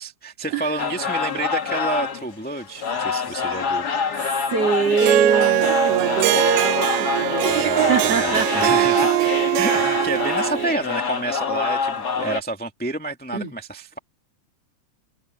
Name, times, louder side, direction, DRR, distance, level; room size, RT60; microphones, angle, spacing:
voice 1, 0.0-3.9 7.5-9.1 9.5-14.0, right 2 dB, 5° left, 1.0 m, -29 dB
sound 1, 0.8-12.4, left 6 dB, 40° left, 2.0 m, -26 dB
voice 2, 4.5-9.0 9.7-9.8 13.3-13.5, right 6 dB, 55° right, 4.6 m, -24 dB
Harp, 5.0-10.8, right 17 dB, 80° right, 1.8 m, -21 dB
omnidirectional pair, 3.3 m